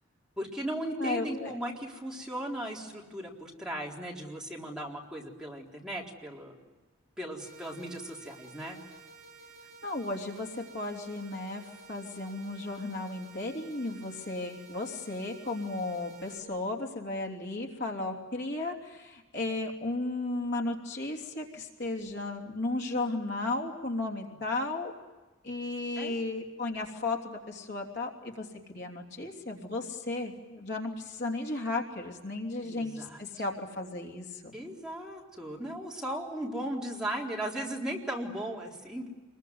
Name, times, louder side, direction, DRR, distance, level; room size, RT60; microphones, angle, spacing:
voice 1, 0.4-6.5 7.2-8.8 26.0-26.1 32.6-33.4 34.5-39.2, right 1 dB, 5° right, -3 dB, 4.1 m, -37 dB
voice 2, 1.0-1.5 9.8-24.9 25.4-34.5, left 2 dB, 55° left, 1 dB, 3.1 m, -34 dB
sound 1, 7.4-16.4, right 3 dB, 40° right, 6.6 m, -52 dB
28.0 x 22.0 x 9.5 m, 1.2 s
head